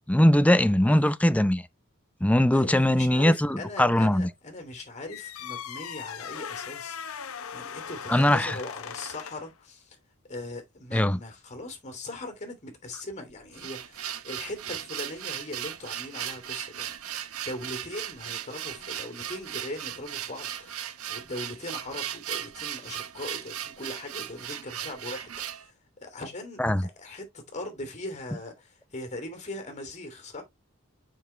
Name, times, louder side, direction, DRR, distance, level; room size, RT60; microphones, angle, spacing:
voice 1, 0.1-1.6 2.2-4.3 8.1-8.6 10.9-11.2 26.6-26.8, left 1 dB, 5° left, 0.5 m, -21 dB
voice 2, 2.5-10.0 10.3-25.7 26.0-30.4, left 1 dB, 35° left, 2.9 m, -40 dB
sound 1, 5.1-9.5, left 7 dB, 70° left, 0.8 m, -39 dB
sound 2, 13.3-25.7, right 11 dB, 75° right, 0.9 m, -37 dB
7.2 x 5.9 x 3.2 m
head